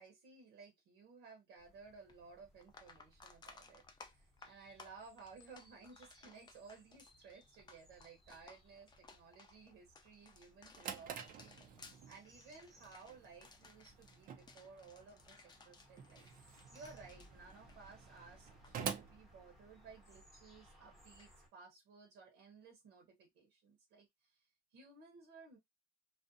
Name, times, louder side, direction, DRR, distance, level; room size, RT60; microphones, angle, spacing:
voice 1, 0.0-24.4 24.7-25.6, right 4 dB, 90° right, 0.9 m, -58 dB
sound 1, 1.6-21.5, equal, ahead, 0.9 m, -66 dB
sound 2, 2.1-2.2 2.6-18.2 18.5-18.7 21.2-21.3, left 4 dB, 25° left, 0.5 m, -60 dB
Drawer open or close, 10.4-20.2, right 7 dB, 55° right, 0.5 m, -49 dB
2.5 x 2.1 x 2.5 m
cardioid pair, 110°, 17 cm